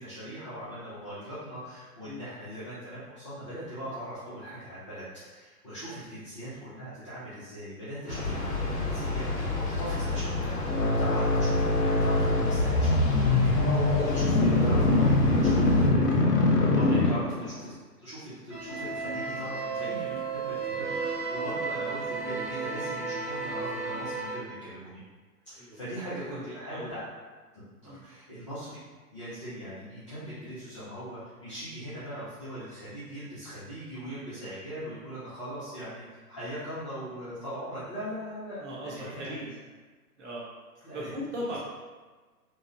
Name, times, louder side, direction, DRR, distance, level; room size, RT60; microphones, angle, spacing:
voice 1, 0.0-10.7 11.0-17.7 18.0-25.0 25.5-27.0 27.8-28.8 29.1-39.4 40.8-41.1, equal, 20° left, -13 dB, 0.5 m, -40 dB
Train, 8.1-15.9, left 2 dB, 65° left, 1.0 m, -31 dB
sound 1, 10.7-17.6, left 2 dB, 80° left, 0.6 m, -23 dB
sound 2, 18.5-24.4, right 4 dB, 90° right, 1.2 m, -33 dB
voice 2, 26.1-26.4 26.7-26.8 27.8-28.0 38.6-39.6 40.2-40.5 40.9-41.6, equal, 50° right, -6 dB, 0.9 m, -38 dB
3.0 x 2.0 x 2.4 m, 1.3 s
figure-of-eight pair, 130°, 47 cm